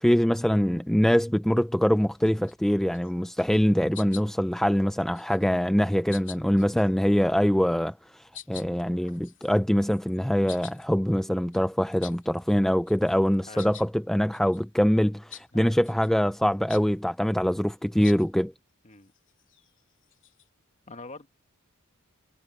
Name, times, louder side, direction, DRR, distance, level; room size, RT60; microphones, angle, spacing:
voice 1, 0.0-18.5, equal, ahead, 0.4 m, -24 dB
sound 1, 2.1-2.5 2.9-3.1 3.4-3.7 3.9-4.5 5.0-5.5 6.1-6.9 7.7-7.9 8.3-12.6 12.9-13.9 14.3-14.6 15.3-15.5 15.8-16.1 16.7-16.9 18.0-18.3 18.9-20.5, left 10 dB, 60° left, 2.4 m, -47 dB
voice 2, 20.9-21.3, left 3 dB, 35° left, 1.5 m, -44 dB
head